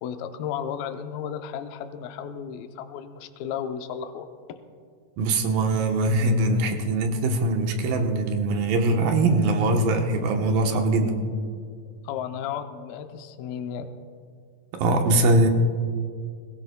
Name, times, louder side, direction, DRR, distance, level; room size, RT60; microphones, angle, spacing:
voice 1, 0.0-4.3 12.0-13.9, left 8 dB, 80° left, 7 dB, 2.5 m, -33 dB
voice 2, 5.2-11.2 14.7-15.5, right 2 dB, 75° right, 3 dB, 2.7 m, -22 dB
21.5 x 17.5 x 2.2 m, 2.1 s
omnidirectional pair, 4.3 m